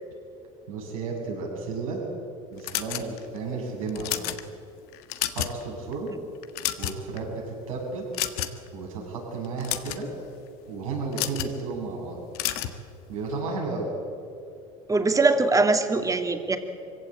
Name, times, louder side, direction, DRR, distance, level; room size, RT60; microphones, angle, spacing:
voice 1, 0.7-2.0 2.5-4.4 5.3-6.1 6.8-8.0 8.7-10.1 10.7-12.2 13.1-13.9, right 4 dB, 85° right, -1 dB, 7.0 m, -33 dB
sound 1, 2.6-3.4 3.9-4.4 4.9-5.6 5.9-6.1 6.4-7.2 8.1-8.7 9.4-10.0 11.1-11.5 12.3-12.8, left 13 dB, 65° left, 1.6 m, -30 dB
voice 2, 14.9-16.6, right 3 dB, 20° right, 6 dB, 2.6 m, -22 dB
25.0 x 16.5 x 8.8 m, 2.6 s
hypercardioid pair, 75°, 17 cm